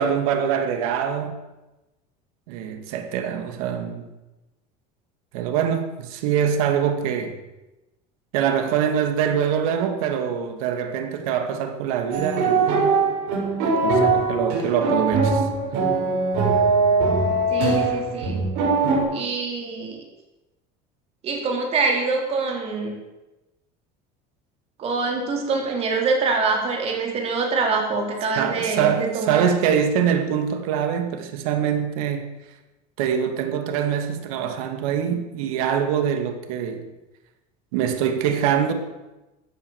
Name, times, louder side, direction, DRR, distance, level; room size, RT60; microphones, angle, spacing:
voice 1, 0.0-1.4 2.5-4.1 5.3-7.4 8.3-12.7 13.6-15.5 28.4-32.3 33.0-36.9 37.7-38.7, right 8 dB, 90° right, 6 dB, 2.4 m, -24 dB
sound 1, 12.1-19.0, right 3 dB, 60° right, 7.4 m, -21 dB
voice 2, 17.5-18.4 19.1-20.0 21.2-23.0 24.8-29.5, right 4 dB, 35° right, 1 dB, 3.7 m, -25 dB
15.0 x 10.0 x 7.3 m, 1.0 s
cardioid pair, 160°, 18 cm